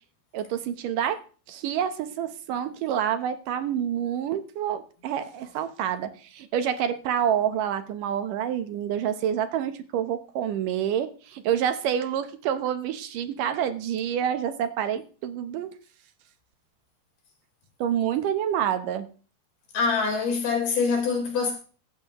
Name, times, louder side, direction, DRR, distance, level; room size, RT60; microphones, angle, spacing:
voice 1, 0.3-1.2 1.5-15.7 17.8-19.1, right 9 dB, 70° right, 2.4 m, -28 dB
voice 2, 19.7-21.5, left 5 dB, 75° left, 5.9 m, -24 dB
15.5 x 14.5 x 3.0 m
omnidirectional pair, 4.4 m